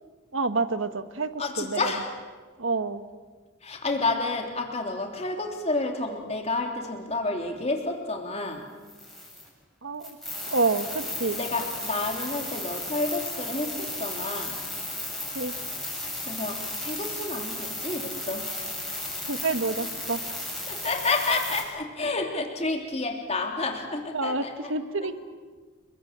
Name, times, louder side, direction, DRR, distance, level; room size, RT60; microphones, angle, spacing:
voice 1, 0.3-1.9 2.6-3.0 9.8-10.2 10.5-11.4 15.3-15.5 19.3-20.4 24.1-25.1, right 3 dB, 70° right, 10 dB, 1.5 m, -28 dB
voice 2, 1.4-2.1 3.6-8.6 11.3-14.5 16.3-18.5 20.7-24.7, left 3 dB, 30° left, 3 dB, 3.2 m, -30 dB
sound 1, 8.9-9.5 10.0-21.6, left 1 dB, ahead, 7.2 m, -35 dB
29.5 x 22.0 x 7.6 m, 1.4 s
head